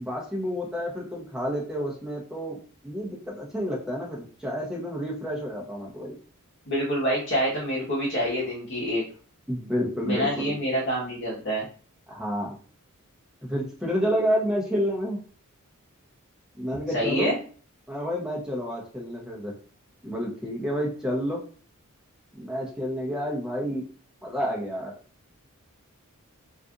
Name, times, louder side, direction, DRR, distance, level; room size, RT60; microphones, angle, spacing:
voice 1, 0.0-2.6 2.8-6.2 9.5-10.6 12.1-12.6 13.4-15.2 16.6-17.4 17.9-19.5 20.0-21.4 22.3-23.9 24.2-24.9, equal, 5° right, -3 dB, 0.8 m, -29 dB
voice 2, 6.7-9.0 10.0-11.7 16.9-17.3, equal, 55° left, -6 dB, 1.0 m, -26 dB
2.7 x 2.4 x 3.6 m, 0.42 s
head